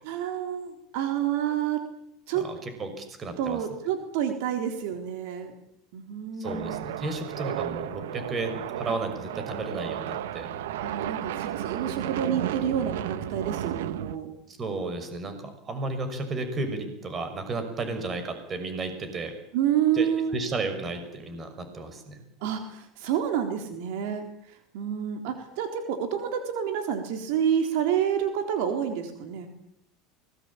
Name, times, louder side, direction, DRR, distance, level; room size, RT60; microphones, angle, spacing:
voice 1, 0.0-1.8 2.3-2.5 3.4-5.5 5.9-6.9 10.8-14.3 19.5-20.4 22.4-24.3 24.7-29.5, right 9 dB, 70° right, 6 dB, 3.8 m, -28 dB
voice 2, 2.3-3.6 6.4-10.5 14.5-19.3 19.9-22.2, right 3 dB, 25° right, 8 dB, 6.2 m, -33 dB
sound 1, 6.4-14.2, right 12 dB, 90° right, 1.5 m, -33 dB
24.5 x 20.0 x 8.8 m, 0.74 s
supercardioid pair, 135°, 0 cm